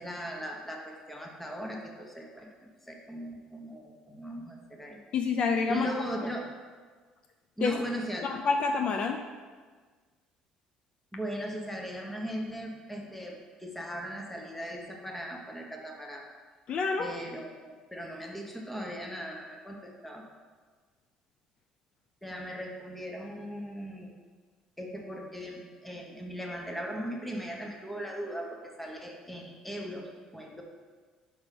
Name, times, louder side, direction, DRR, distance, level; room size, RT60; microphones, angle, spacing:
voice 1, 0.0-5.0 5.7-6.5 7.6-8.3 11.1-16.2 17.0-20.2 22.2-24.2 24.8-30.6, equal, 5° left, 1 dB, 1.1 m, -38 dB
voice 2, 5.1-5.9 7.6-7.7 8.2-9.2 16.7-17.1, left 5 dB, 50° left, 4 dB, 0.5 m, -28 dB
5.2 x 4.8 x 5.8 m, 1.5 s
cardioid pair, 100°, 2 cm